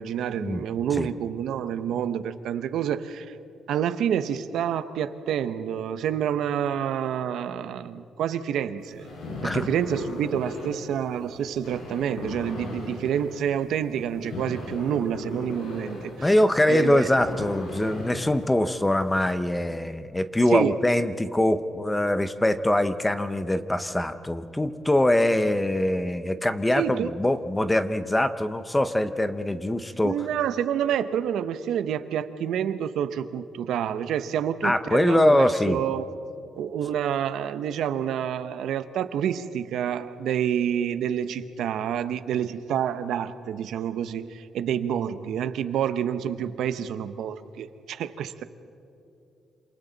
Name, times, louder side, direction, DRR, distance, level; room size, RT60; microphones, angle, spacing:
voice 1, 0.0-3.4 3.7-9.1 9.4-16.3 16.7-17.1 20.5-20.8 26.8-27.1 30.0-36.1 36.6-48.4, right 9 dB, 70° right, 12 dB, 0.8 m, -28 dB
sound 1, 8.8-19.2, left 2 dB, 90° left, 7.0 m, -37 dB
voice 2, 16.2-30.1 34.6-35.8, left 1 dB, 10° left, 11 dB, 0.6 m, -23 dB
27.5 x 27.5 x 4.0 m, 2.8 s
cardioid pair, 175°, 0 cm